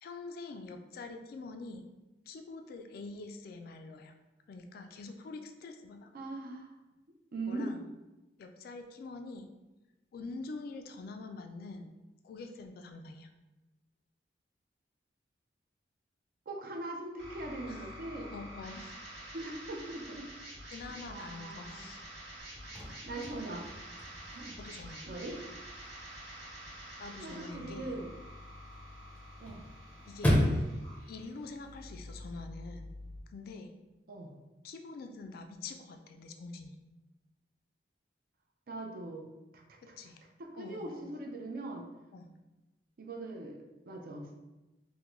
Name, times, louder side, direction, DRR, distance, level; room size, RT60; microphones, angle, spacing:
voice 1, 0.0-1.9 2.3-4.1 4.5-6.1 7.5-7.9 8.4-9.5 10.1-11.9 12.2-13.3 17.7-17.9 18.1-19.0 20.7-22.0 24.6-25.0 27.0-28.0 30.1-30.7 31.1-32.9 33.3-33.8 34.6-36.8 39.8-40.2 40.5-41.1 42.1-42.4, left 3 dB, 55° left, 6 dB, 0.3 m, -45 dB
voice 2, 6.1-6.7 7.3-7.7 16.5-18.3 19.3-20.3 20.8-21.9 23.0-23.7 24.3-24.6 25.0-25.4 27.2-28.1 29.4-29.7 34.1-34.3 38.7-39.3 39.5-39.9 40.4-41.9 43.0-43.6 43.9-44.3, right 2 dB, 55° right, 1 dB, 0.5 m, -41 dB
sound 1, 17.2-33.2, equal, 80° right, 1.1 m, -48 dB
Chirp tweet / Car / Slam, 22.4-32.4, equal, 10° left, 0.5 m, -37 dB
3.6 x 2.1 x 3.0 m, 1.1 s
head